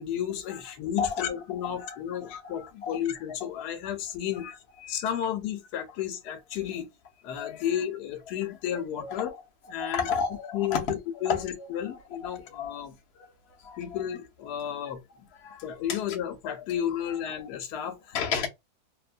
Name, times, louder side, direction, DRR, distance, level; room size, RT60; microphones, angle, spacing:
voice 1, 0.0-4.5 4.9-6.9 7.2-9.3 9.7-10.1 10.5-12.9 13.8-15.0 15.6-18.2, left 10 dB, 80° left, 1.1 m, -32 dB
voice 2, 1.0-1.3 1.6-3.0 3.6-3.7 4.3-4.5 4.8-5.0 7.4-7.6 8.7-9.2 9.8-10.8 11.2-11.4 11.9-12.8 13.2-13.3 13.6-13.8 15.3-16.0 17.1-17.3 18.1-18.5, left 6 dB, 60° left, 0.7 m, -33 dB
2.8 x 2.1 x 2.4 m
omnidirectional pair, 1.8 m